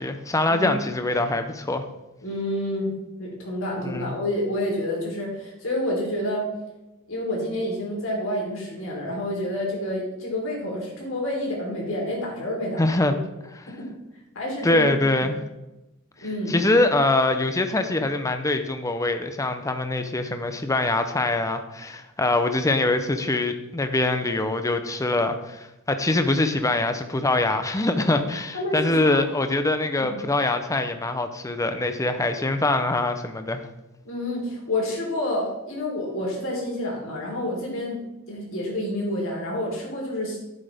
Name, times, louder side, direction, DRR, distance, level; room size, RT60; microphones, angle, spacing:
voice 1, 0.0-1.9 3.8-4.1 12.8-13.1 13.5-13.7 14.6-15.4 16.5-33.6, left 2 dB, 15° left, 7 dB, 0.6 m, -23 dB
voice 2, 2.2-2.9 3.2-6.5 7.1-12.8 13.1-13.2 13.8-13.9 14.3-14.9 16.2-16.6 28.5-29.2 30.0-30.2 34.0-38.0 38.3-40.4, left 1 dB, 65° left, -2 dB, 3.6 m, -28 dB
11.0 x 8.0 x 3.5 m, 0.98 s
head